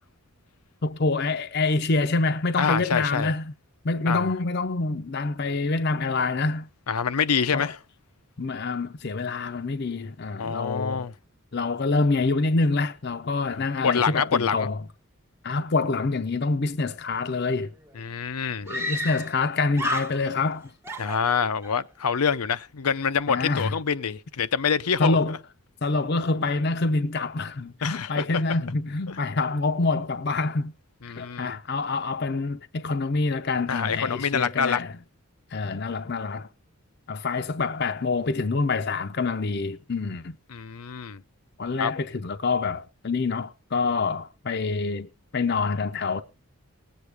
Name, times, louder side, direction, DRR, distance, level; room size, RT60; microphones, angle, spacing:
voice 1, 0.8-3.5 3.8-6.7 7.5-7.7 8.4-11.1 11.5-14.8 15.4-17.7 18.7-20.7 23.3-23.7 25.0-25.4 25.8-30.7 31.0-34.9 35.5-36.5 37.1-40.4 41.6-46.2, left 3 dB, 45° left, 0.6 m, -26 dB
voice 2, 2.6-3.3 4.1-4.3 6.9-7.8 10.4-11.1 13.5-14.7 18.0-18.7 21.0-25.2 27.8-28.3 29.1-29.2 31.0-31.6 33.7-34.8 40.5-41.2 41.8-42.0, left 6 dB, 90° left, 0.6 m, -26 dB
Screaming, 17.9-18.0 18.7-19.5 19.7-20.5 20.8-21.8, equal, 10° right, 0.7 m, -32 dB
20.0 x 8.2 x 3.4 m
head